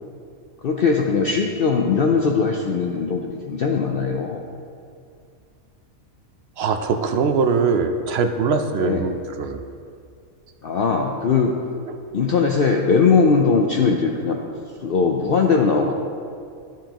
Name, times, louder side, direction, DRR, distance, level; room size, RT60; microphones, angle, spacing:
voice 1, 0.6-4.4 8.7-9.0 10.6-11.5 12.1-14.4 14.8-15.9, left 5 dB, 60° left, 0 dB, 0.6 m, -20 dB
voice 2, 6.6-9.6, right 5 dB, 65° right, 7 dB, 0.7 m, -22 dB
12.0 x 7.4 x 2.9 m, 2.4 s
omnidirectional pair, 1.5 m